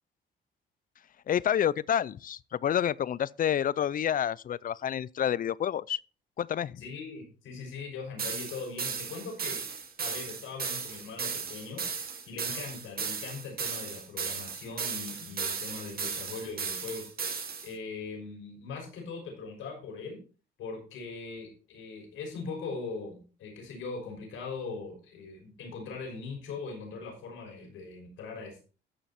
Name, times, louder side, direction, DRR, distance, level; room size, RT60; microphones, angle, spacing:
voice 1, 1.3-6.0 6.4-6.8, left 9 dB, 45° left, 0.4 m, -28 dB
voice 2, 6.8-9.6 10.0-11.8 12.2-17.1 17.3-20.2 20.6-28.7, left 4 dB, 85° left, 5.6 m, -40 dB
sound 1, 8.2-17.7, right 6 dB, 50° right, 2.1 m, -35 dB
14.0 x 5.8 x 4.2 m
cardioid pair, 90°, 20 cm